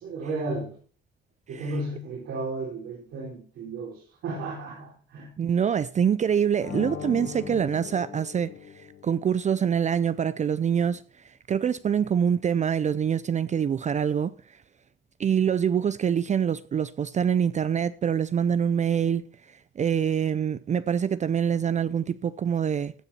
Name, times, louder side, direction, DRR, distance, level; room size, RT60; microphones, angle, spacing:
voice 1, 0.0-0.7 1.5-5.3, right 2 dB, 85° right, 4.5 m, -34 dB
voice 2, 5.4-14.6 15.2-19.2 19.8-22.9, right 8 dB, 35° right, 0.4 m, -25 dB
sound 1, 6.6-9.3, left 8 dB, 60° left, 1.3 m, -38 dB
15.0 x 7.0 x 4.3 m
cardioid pair, 90°, 20 cm